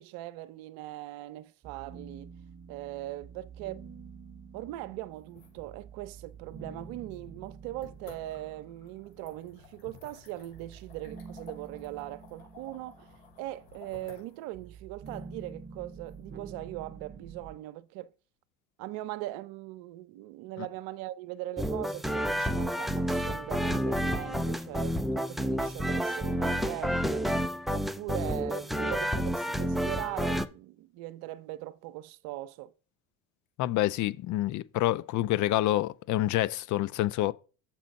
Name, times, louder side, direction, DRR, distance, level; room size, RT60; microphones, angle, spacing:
voice 1, 0.0-2.3 2.7-3.8 4.5-18.1 18.8-27.3 27.7-32.7, right 16 dB, 65° right, 0.6 m, -40 dB
sound 1, 1.6-10.0 10.5-17.6, right 5 dB, 30° right, 0.8 m, -48 dB
sound 2, 5.1-17.0, left 7 dB, 75° left, 4.7 m, -56 dB
sound 3, 21.6-30.5, equal, ahead, 0.4 m, -30 dB
voice 2, 33.6-37.3, left 15 dB, 50° left, 0.6 m, -27 dB
7.3 x 4.5 x 5.2 m
supercardioid pair, 85°, 38 cm